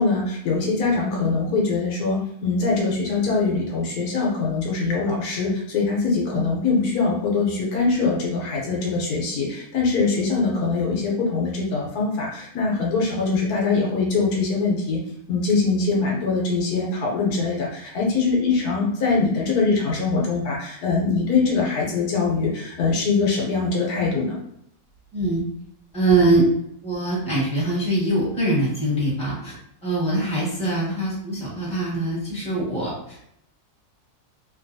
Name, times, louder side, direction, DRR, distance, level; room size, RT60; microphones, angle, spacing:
voice 1, 0.0-15.0 15.3-24.4, left 4 dB, 80° left, -2 dB, 1.2 m, -23 dB
voice 2, 25.1-25.4 25.9-26.5 26.8-29.5 29.8-33.3, right 2 dB, 5° left, -7 dB, 1.2 m, -23 dB
3.1 x 2.2 x 2.6 m, 0.73 s
omnidirectional pair, 1.6 m